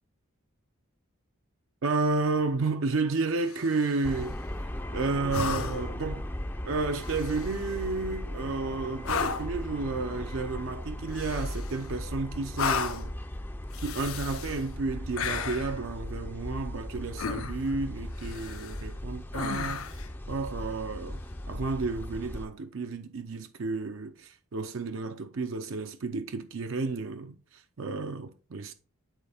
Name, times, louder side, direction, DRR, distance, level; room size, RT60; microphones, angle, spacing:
voice 1, 1.8-4.4 4.9-6.2 6.6-13.1 13.8-19.9 20.3-21.2 21.5-28.7, right 3 dB, 60° right, 0.5 m, -31 dB
sound 1, 3.4-4.1 5.3-6.0 7.0-7.7 9.0-9.6 11.1-11.9 12.5-13.1 13.7-14.6 15.2-15.8 17.2-17.7 18.2-18.8 19.3-20.1 21.9-22.0, left 6 dB, 75° left, 0.6 m, -34 dB
sound 2, 4.0-22.4, left 1 dB, 10° left, 0.4 m, -37 dB
9.1 x 4.3 x 3.4 m
head